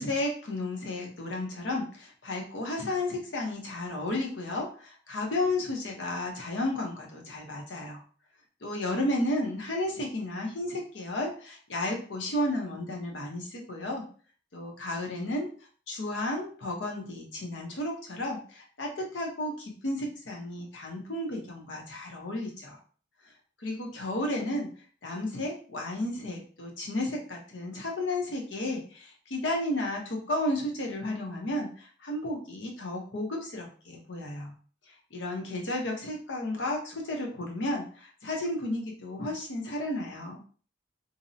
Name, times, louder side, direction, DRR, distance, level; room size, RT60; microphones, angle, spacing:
voice 1, 0.0-8.0 8.6-14.0 14.5-15.5 15.9-22.8 23.6-24.7 25.0-34.5 35.1-40.4, left 1 dB, 85° left, 0 dB, 0.7 m, -33 dB
2.6 x 2.0 x 2.6 m, 0.42 s
head